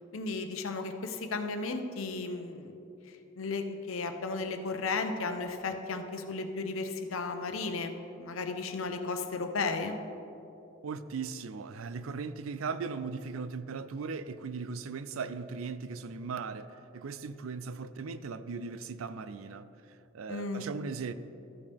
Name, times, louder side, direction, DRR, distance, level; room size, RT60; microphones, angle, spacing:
voice 1, 0.1-2.8 3.4-10.0 20.3-20.7, left 3 dB, 80° left, 7 dB, 0.8 m, -34 dB
voice 2, 10.8-21.1, right 5 dB, 85° right, 13 dB, 0.4 m, -38 dB
13.5 x 8.3 x 3.5 m, 2.9 s
head